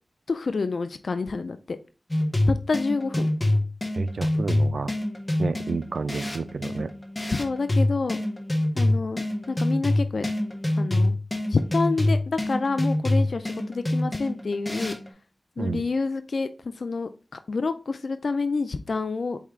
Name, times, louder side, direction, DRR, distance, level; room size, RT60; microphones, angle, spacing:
voice 1, 0.3-1.8 2.5-3.3 7.3-8.2 8.8-10.3 10.8-11.1 11.5-15.0 15.6-19.4, left 4 dB, 75° left, 0.3 m, -28 dB
sound 1, 2.1-15.1, left 1 dB, 20° left, 0.9 m, -25 dB
voice 2, 4.0-4.9 5.4-6.9 15.6-15.8, right 4 dB, 80° right, 0.3 m, -30 dB
4.5 x 3.6 x 3.2 m
wide cardioid pair, 65°, 0 cm